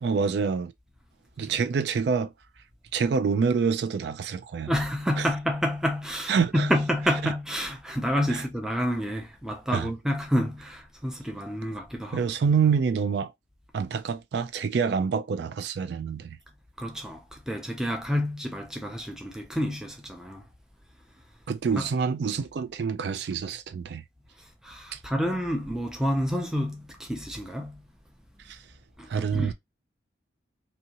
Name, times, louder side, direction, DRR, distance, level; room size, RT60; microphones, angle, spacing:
voice 1, 0.0-0.7 1.4-2.3 2.9-4.7 5.2-5.3 6.3-6.7 7.2-7.3 8.3-8.4 9.7-9.9 12.1-13.3 13.7-16.4 21.5-24.0 24.9-25.0 28.5-28.6 29.1-29.5, right 6 dB, 65° right, 0.3 m, -26 dB
voice 2, 4.7-12.2 16.8-20.4 21.8-21.9 24.6-27.8 29.0-29.5, equal, 5° right, 0.5 m, -29 dB
2.7 x 2.7 x 2.8 m
head